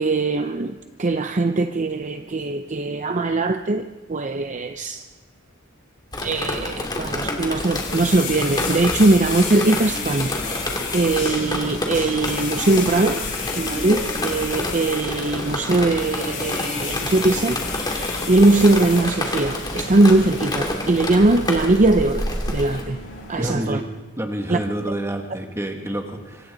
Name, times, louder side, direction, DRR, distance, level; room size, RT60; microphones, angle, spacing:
voice 1, 0.0-5.1 6.2-13.2 13.5-23.0 23.3-23.8 24.5-24.6, right 2 dB, 35° right, 7 dB, 0.7 m, -21 dB
Drip, 6.1-22.8, left 1 dB, 20° left, 2.9 m, -29 dB
sound 1, 7.6-23.6, left 5 dB, 60° left, 7.8 m, -33 dB
voice 2, 23.4-23.8 24.2-26.5, right 1 dB, 15° right, 3 dB, 2.2 m, -28 dB
25.5 x 25.0 x 4.0 m, 1.3 s
head